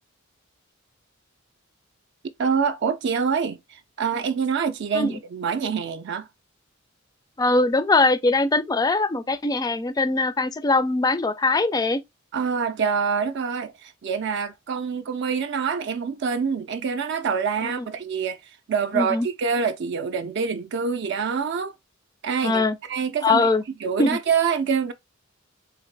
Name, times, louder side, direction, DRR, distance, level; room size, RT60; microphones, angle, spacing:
voice 1, 2.4-6.3 12.3-21.7 22.2-23.5 23.8-24.9, right 6 dB, 60° right, 0.4 m, -26 dB
voice 2, 7.4-12.0 17.6-17.9 18.9-19.3 22.4-22.8 23.2-23.6 24.0-24.2, left 3 dB, 20° left, 0.3 m, -21 dB
3.9 x 2.8 x 3.2 m
head